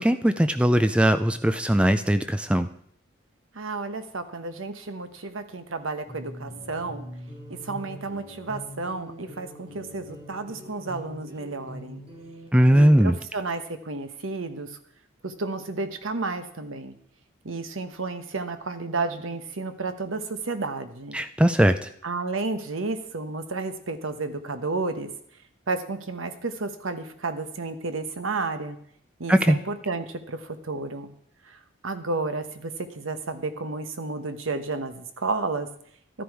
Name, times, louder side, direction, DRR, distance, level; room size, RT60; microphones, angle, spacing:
voice 1, 0.0-2.7 12.5-13.2 21.1-21.9 29.3-29.6, equal, 5° right, 10 dB, 0.4 m, -19 dB
voice 2, 3.5-7.1 7.5-12.0 12.7-14.7 15.2-16.9 17.4-21.2 22.0-25.1 25.7-28.8 29.2-31.1 31.5-35.7, right 3 dB, 85° right, 9 dB, 1.1 m, -32 dB
sound 1, 6.1-12.5, equal, 30° right, 3.9 m, -42 dB
13.0 x 10.0 x 4.8 m, 0.67 s
head